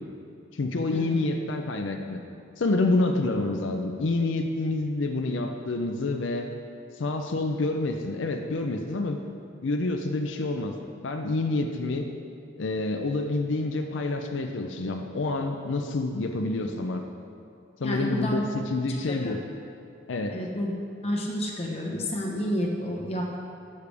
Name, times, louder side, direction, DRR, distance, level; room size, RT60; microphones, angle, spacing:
voice 1, 0.5-2.2 2.6-6.5 7.0-9.2 9.6-10.7 11.0-12.1 12.6-17.0 17.8-19.4 20.1-20.4, left 2 dB, 90° left, 4 dB, 0.6 m, -28 dB
voice 2, 17.8-18.5 19.1-19.3 20.3-20.7 21.0-23.4, equal, 35° left, -1 dB, 1.1 m, -30 dB
11.5 x 6.7 x 3.4 m, 2.5 s
head